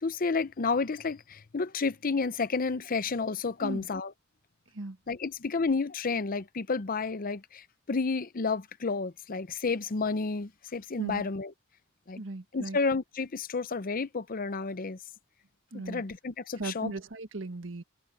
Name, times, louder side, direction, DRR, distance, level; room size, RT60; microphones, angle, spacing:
voice 1, 0.0-4.1 5.1-11.5 12.1-12.2 12.5-15.0 15.9-16.9, left 4 dB, 45° left, 0.7 m, -31 dB
voice 2, 12.2-12.8 15.7-16.0 16.6-17.8, right 2 dB, 70° right, 1.6 m, -37 dB
head